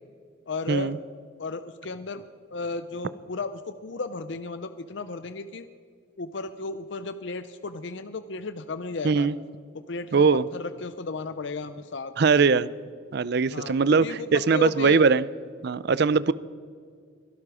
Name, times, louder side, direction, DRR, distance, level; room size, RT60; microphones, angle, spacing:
voice 1, 0.5-0.9 1.4-2.2 2.5-5.7 6.2-9.3 9.7-12.4 13.5-14.3 14.5-15.0, left 3 dB, 60° left, 12 dB, 0.6 m, -34 dB
voice 2, 9.0-9.4 10.1-10.4 12.2-12.7 13.1-15.3 15.6-16.3, right 5 dB, 50° right, 18 dB, 0.4 m, -21 dB
23.0 x 12.5 x 4.9 m, 2.1 s
head